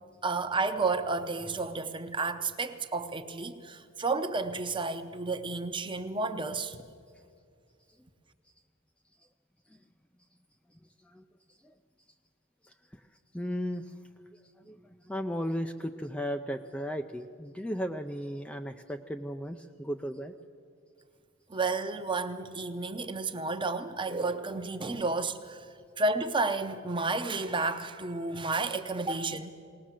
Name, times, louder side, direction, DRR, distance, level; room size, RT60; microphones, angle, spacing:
voice 1, 0.2-6.8 21.5-25.7 26.0-29.5, right 3 dB, 25° right, 0.8 m, -31 dB
voice 2, 12.6-13.0 13.3-14.0 14.3-14.4 14.6-20.3, equal, 5° left, 0.4 m, -36 dB
19.0 x 19.0 x 7.5 m
head